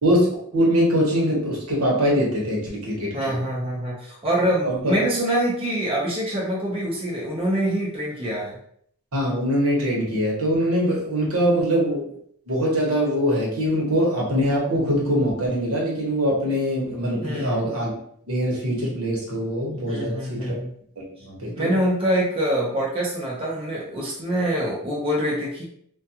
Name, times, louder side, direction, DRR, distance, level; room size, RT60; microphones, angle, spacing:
voice 1, 0.0-3.4 4.6-4.9 9.1-12.1 12.5-17.9 18.3-20.5 21.0-21.7, equal, 75° right, -3 dB, 1.0 m, -23 dB
voice 2, 3.1-8.6 17.2-17.6 19.9-20.7 21.5-25.6, right 1 dB, 25° right, -4 dB, 0.5 m, -25 dB
2.3 x 2.2 x 2.7 m, 0.65 s
head